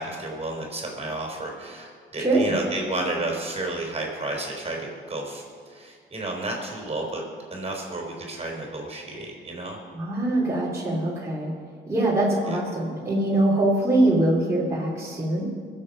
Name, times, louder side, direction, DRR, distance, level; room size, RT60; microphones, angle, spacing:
voice 1, 0.0-7.2 7.5-9.8 12.5-12.6, right 2 dB, 30° right, 0 dB, 3.7 m, -32 dB
voice 2, 2.2-2.5 9.9-11.5 11.9-15.5, right 1 dB, 15° right, -6 dB, 3.0 m, -23 dB
21.5 x 7.7 x 5.4 m, 2.1 s
cardioid pair, 90°, 20 cm